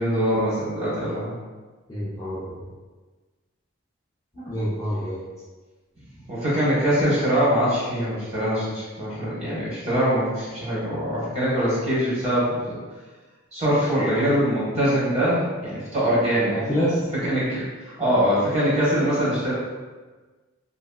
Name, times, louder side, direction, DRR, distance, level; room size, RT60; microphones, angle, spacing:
voice 1, 0.0-1.4 4.3-4.6 6.3-12.8 13.5-16.7 17.2-19.5, equal, 30° right, -9 dB, 1.0 m, -23 dB
voice 2, 1.9-2.6 4.5-5.2 16.5-17.0, equal, 15° left, -8 dB, 0.3 m, -26 dB
2.9 x 2.7 x 2.2 m, 1.3 s
head